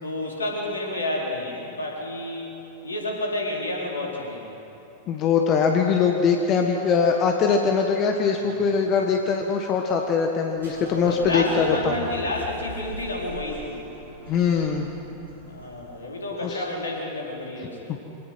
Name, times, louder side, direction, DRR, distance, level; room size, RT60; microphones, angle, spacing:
voice 1, 0.0-2.5 2.8-4.6 8.3-8.8 10.6-13.7 15.5-18.0, left 1 dB, 75° left, -2 dB, 4.1 m, -30 dB
voice 2, 5.1-12.0 14.3-14.9 16.4-16.6 17.6-17.7, left 5 dB, 35° left, 3 dB, 1.4 m, -22 dB
sound 1, 10.5-16.1, right 1 dB, 70° right, 5.4 m, -41 dB
25.0 x 18.0 x 6.1 m, 2.9 s
figure-of-eight pair, 90°, 0 cm